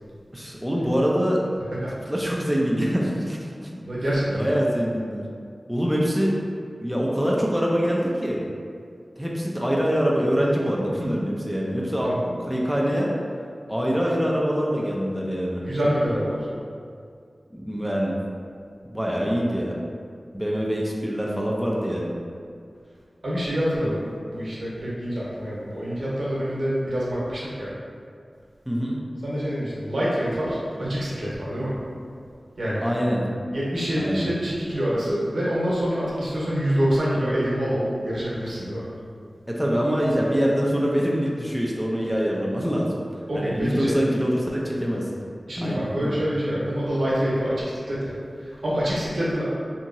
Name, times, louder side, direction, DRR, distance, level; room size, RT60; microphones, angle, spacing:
voice 1, 0.3-1.4 2.1-3.7 4.4-5.2 5.7-6.4 6.8-8.4 9.2-13.1 13.7-15.6 17.5-18.2 18.9-19.7 20.3-22.1 28.7-29.0 32.8-33.2 34.0-34.3 39.5-43.0 43.3-45.1 45.6-46.1, equal, ahead, -4 dB, 0.4 m, -24 dB
voice 2, 3.8-4.6 12.0-12.3 15.6-16.5 23.2-24.0 24.3-27.7 29.2-31.7 32.6-32.8 33.5-38.8 43.3-44.0 45.5-49.4, equal, 80° right, -8 dB, 0.8 m, -26 dB
2.8 x 2.8 x 2.6 m, 2.2 s
wide cardioid pair, 60°, 0 cm